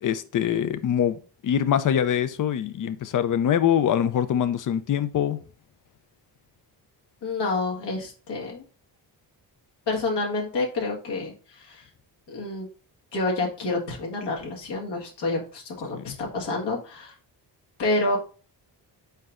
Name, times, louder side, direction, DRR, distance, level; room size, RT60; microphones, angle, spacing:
voice 1, 0.0-5.4 15.9-16.2, left 9 dB, 50° left, 0.6 m, -24 dB
voice 2, 7.2-8.6 9.9-11.8 12.3-12.7 13.1-17.1 17.8-18.2, left 2 dB, 75° left, 1.8 m, -28 dB
4.6 x 4.5 x 2.5 m
cardioid pair, 105°, 41 cm